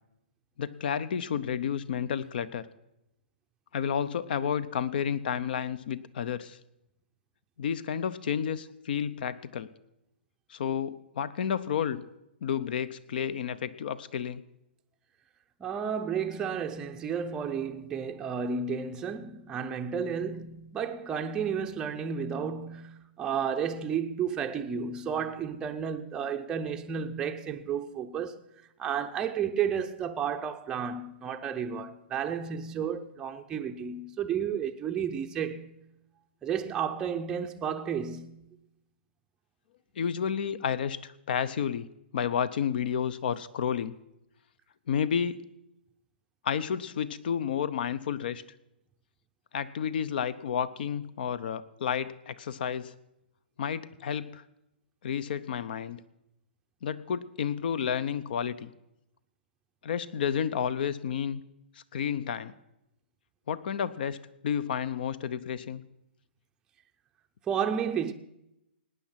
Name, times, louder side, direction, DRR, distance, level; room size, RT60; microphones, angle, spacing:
voice 1, 0.6-2.7 3.7-6.6 7.6-9.7 10.5-12.0 12.4-14.4 40.0-43.9 44.9-45.4 46.4-48.4 49.5-52.9 53.6-54.4 55.0-56.0 56.8-58.7 59.8-61.4 61.9-62.5 63.5-64.2 64.4-65.8, left 8 dB, 55° left, 0.8 m, -31 dB
voice 2, 15.6-28.4 28.8-35.8 36.4-38.5 67.5-68.1, right 7 dB, 10° right, 0.6 m, -32 dB
18.0 x 9.4 x 5.9 m
hypercardioid pair, 155°, 6 cm